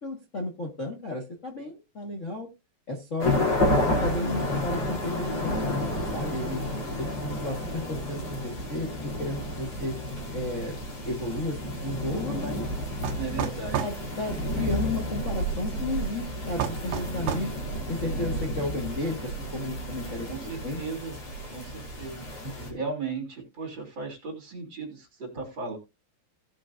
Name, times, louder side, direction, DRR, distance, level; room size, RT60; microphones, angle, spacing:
voice 1, 0.0-2.5 2.9-3.5 3.9-6.7 7.0-9.9 10.3-10.8 11.0-12.7 13.3-13.5 13.8-17.5 17.9-20.8 22.4-22.8, left 2 dB, 75° left, 1 dB, 0.7 m, -33 dB
sound 1, 3.2-22.7, left 1 dB, 45° left, 3.8 m, -31 dB
sound 2, 13.0-14.0 16.6-17.5, right 8 dB, 70° right, 2.4 m, -30 dB
voice 2, 13.1-13.8 20.2-21.1 21.5-21.7 22.0-22.2 22.5-25.8, right 4 dB, 35° right, 1 dB, 3.3 m, -36 dB
17.5 x 6.4 x 2.6 m, 0.24 s
omnidirectional pair, 4.3 m